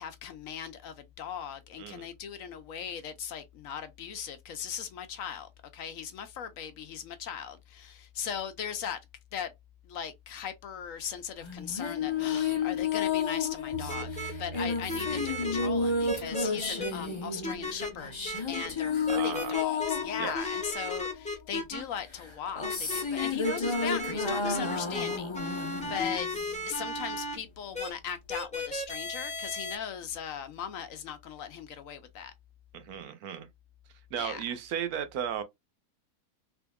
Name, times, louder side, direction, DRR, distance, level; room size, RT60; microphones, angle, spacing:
voice 1, 0.0-9.0 9.3-9.5 9.8-18.2 18.5-26.3 26.7-32.3 34.2-34.4, left 8 dB, 70° left, 0.9 m, -38 dB
sound 1, 11.4-21.3 22.1-26.8, left 5 dB, 30° left, 0.5 m, -32 dB
voice 2, 12.3-12.6 19.1-19.5 20.2-20.5 32.7-33.5 34.1-35.4, right 9 dB, 75° right, 1.2 m, -35 dB
Bass guitar, 13.7-17.1, right 6 dB, 60° right, 0.5 m, -45 dB
sound 2, 13.9-14.3 14.9-15.7 16.1-16.9 17.4-17.9 18.2-18.7 19.1-20.0 20.3-21.8 22.6-27.3 27.7-27.9 28.3-29.8, left 1 dB, 5° left, 0.9 m, -35 dB
3.5 x 3.4 x 2.2 m
omnidirectional pair, 1.6 m